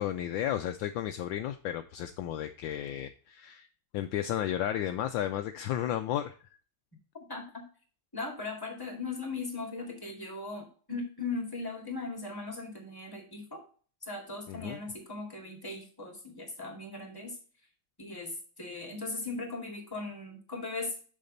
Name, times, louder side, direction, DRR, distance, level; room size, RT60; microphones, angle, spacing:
voice 1, 0.0-3.7 3.9-6.4 14.5-14.8, left 11 dB, 75° left, 8 dB, 1.2 m, -33 dB
voice 2, 8.1-13.6 14.0-17.4 18.0-21.0, left 3 dB, 10° left, 2 dB, 2.2 m, -38 dB
6.8 x 6.5 x 3.9 m, 0.41 s
omnidirectional pair, 2.3 m